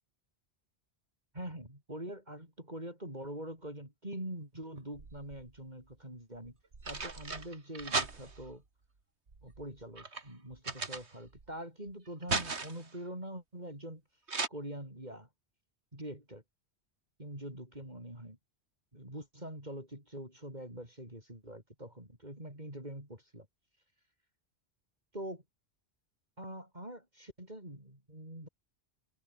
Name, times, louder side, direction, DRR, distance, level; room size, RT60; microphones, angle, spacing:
voice 1, 1.3-6.6 6.9-8.6 9.4-14.0 14.5-15.3 15.9-16.4 17.2-18.4 18.9-23.5 25.1-25.4 26.4-28.5, right 1 dB, 40° right, 7.8 m, -44 dB
tirando bolsas, 4.8-5.6 6.4-8.6 9.3-11.5 11.9-12.9 14.3-14.5, right 3 dB, 80° right, 2.8 m, -37 dB
omnidirectional pair, 1.1 m